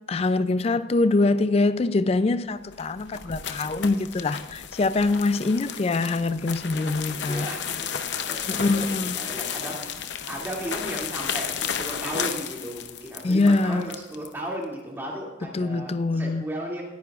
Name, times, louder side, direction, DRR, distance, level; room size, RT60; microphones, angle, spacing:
voice 1, 0.1-7.5 8.5-9.2 13.2-13.9 15.5-16.4, left 3 dB, 30° left, 14 dB, 0.3 m, -24 dB
sound 1, 2.6-14.3, left 8 dB, 65° left, 0.7 m, -33 dB
voice 2, 7.1-7.8 8.3-16.8, right 1 dB, 10° right, -3 dB, 2.5 m, -35 dB
19.5 x 9.6 x 2.4 m, 1.1 s
head